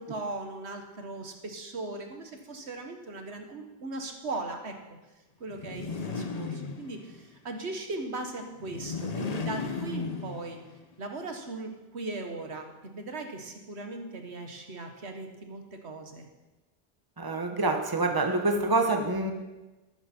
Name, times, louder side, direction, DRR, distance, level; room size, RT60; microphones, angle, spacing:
voice 1, 0.0-4.8 5.4-10.6 11.0-16.3, right 2 dB, 90° right, 4 dB, 1.7 m, -38 dB
sound 1, 5.5-7.2 8.6-10.8, left 4 dB, 40° left, 0.9 m, -35 dB
voice 2, 17.2-19.3, right 2 dB, 20° right, 5 dB, 1.2 m, -26 dB
14.0 x 12.5 x 4.5 m, 1.1 s
omnidirectional pair, 1.1 m